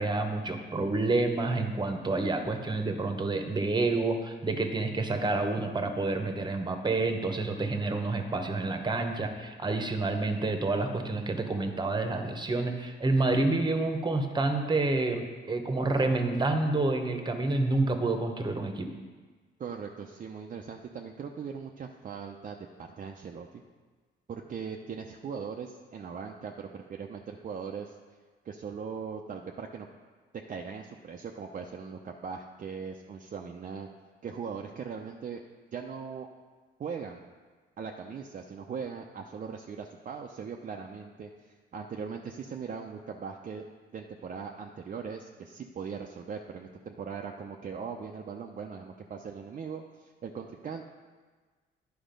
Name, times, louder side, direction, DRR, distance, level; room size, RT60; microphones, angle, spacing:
voice 1, 0.0-18.9, right 2 dB, 20° right, 6 dB, 1.1 m, -28 dB
voice 2, 19.6-23.6 24.3-28.0 28.4-29.9 30.3-33.9 34.2-35.4 35.7-36.3 36.8-37.3 37.8-43.7 43.9-50.8, right 6 dB, 40° right, 2 dB, 0.6 m, -40 dB
10.0 x 5.0 x 5.2 m, 1.4 s
cardioid pair, 90°, 20 cm